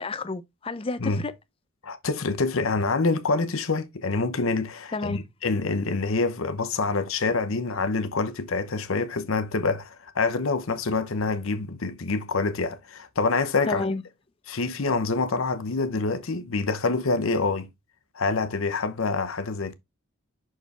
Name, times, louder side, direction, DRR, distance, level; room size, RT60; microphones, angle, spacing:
voice 1, 0.0-1.3 4.9-5.3 13.7-14.0, left 3 dB, 25° left, 0.5 m, -30 dB
voice 2, 1.8-13.8 14.5-17.7 18.1-19.7, left 3 dB, 70° left, 0.8 m, -26 dB
6.1 x 4.6 x 3.3 m
head